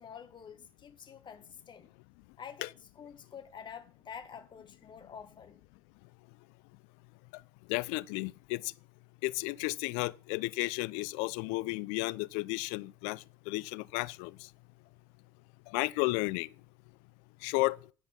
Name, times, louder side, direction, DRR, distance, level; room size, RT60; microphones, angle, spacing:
voice 1, 0.0-1.9 2.4-5.6, left 7 dB, 40° left, 1.4 m, -48 dB
voice 2, 7.7-8.7 9.2-14.3 15.7-16.5 17.4-17.8, left 23 dB, 75° left, 0.4 m, -33 dB
11.0 x 5.3 x 5.7 m
hypercardioid pair, 65°, 12 cm